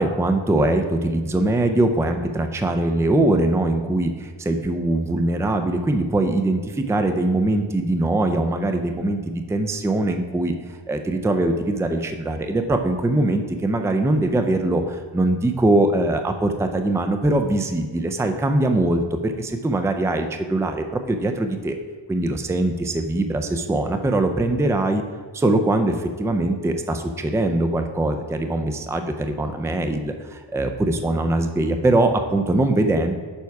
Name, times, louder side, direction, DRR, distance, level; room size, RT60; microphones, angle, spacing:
voice 1, 0.0-10.5 10.9-21.8 22.1-25.0 25.3-33.1, right 2 dB, 5° right, 6 dB, 0.4 m, -22 dB
7.0 x 4.7 x 4.7 m, 1.5 s
wide cardioid pair, 95°, 45 cm